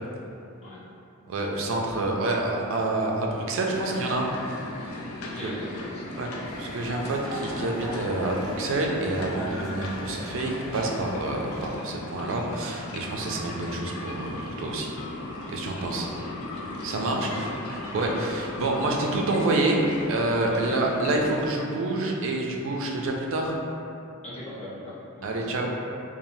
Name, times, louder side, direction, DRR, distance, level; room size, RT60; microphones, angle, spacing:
voice 1, 1.3-4.3 5.4-5.5 6.2-6.3 6.6-14.9 15.5-16.1 16.8-19.8 20.1-23.6 25.2-25.7, right 2 dB, 65° right, 0 dB, 0.4 m, -28 dB
sound 1, 3.7-21.5, left 2 dB, 80° left, 0.4 m, -37 dB
voice 2, 5.2-6.2 15.8-16.3 17.1-17.4 17.8-18.2 20.5-20.8 24.2-25.5, left 1 dB, 35° left, -9 dB, 0.6 m, -40 dB
sound 2, 6.4-11.8, equal, 25° right, 0.9 m, -39 dB
3.0 x 2.1 x 2.6 m, 2.7 s
head